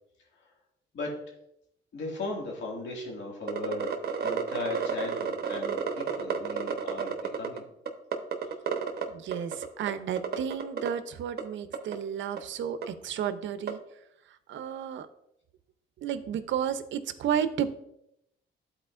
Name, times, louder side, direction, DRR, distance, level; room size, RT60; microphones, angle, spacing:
voice 1, 1.9-7.6 8.4-8.5, left 2 dB, 65° left, -1 dB, 2.1 m, -37 dB
sound 1, 3.5-7.6 7.9-9.0 9.3-9.9 10.2-10.9 11.4-11.5 11.7-11.9 12.4-12.5 12.8-12.9 13.7-13.8, right 7 dB, 55° right, 1.0 m, -30 dB
voice 2, 9.1-13.8 14.5-15.1 16.0-17.7, right 8 dB, 70° right, 11 dB, 0.7 m, -32 dB
12.0 x 4.3 x 2.5 m, 0.79 s
cardioid pair, 90°, 20 cm